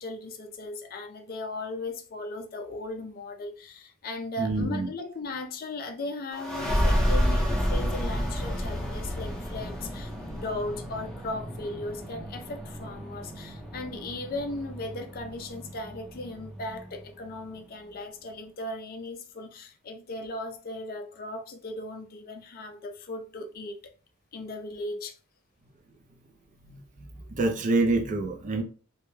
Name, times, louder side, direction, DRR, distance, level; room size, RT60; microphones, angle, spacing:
voice 1, 0.0-23.8 24.3-25.1, left 2 dB, 45° left, 0.4 m, -37 dB
voice 2, 4.4-4.9 26.7-26.8 27.4-28.6, right 2 dB, 35° right, 0.4 m, -26 dB
sound 1, 6.3-17.6, equal, 5° left, 0.7 m, -31 dB
2.2 x 2.1 x 3.1 m
head